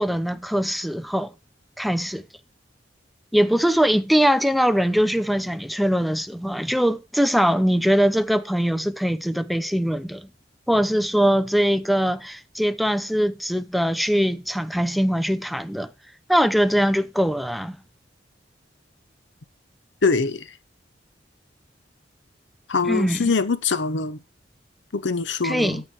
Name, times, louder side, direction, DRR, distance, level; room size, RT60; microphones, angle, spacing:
voice 1, 0.0-1.3 1.8-2.2 3.3-10.3 10.7-15.9 16.3-17.8 22.8-23.3 25.4-25.8, equal, ahead, 0.5 m, -22 dB
voice 2, 20.0-20.4 22.7-24.2 24.9-25.8, left 4 dB, 85° left, 0.8 m, -23 dB
13.0 x 4.6 x 4.4 m
head